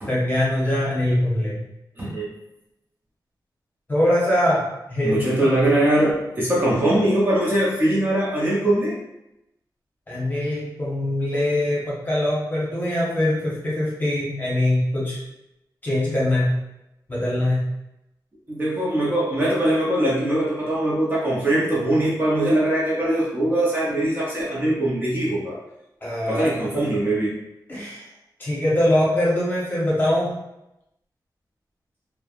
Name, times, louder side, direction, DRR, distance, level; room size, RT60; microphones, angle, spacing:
voice 1, 0.1-1.6 3.9-5.5 10.1-15.2 15.8-16.6 17.1-17.7 26.0-26.5 27.7-28.0 28.4-30.3, left 1 dB, 25° left, -7 dB, 0.9 m, -22 dB
voice 2, 5.0-8.9 18.5-25.6 26.3-27.4, right 1 dB, 25° right, -6 dB, 0.6 m, -21 dB
3.1 x 2.1 x 2.4 m, 0.87 s
wide cardioid pair, 165°, 8 cm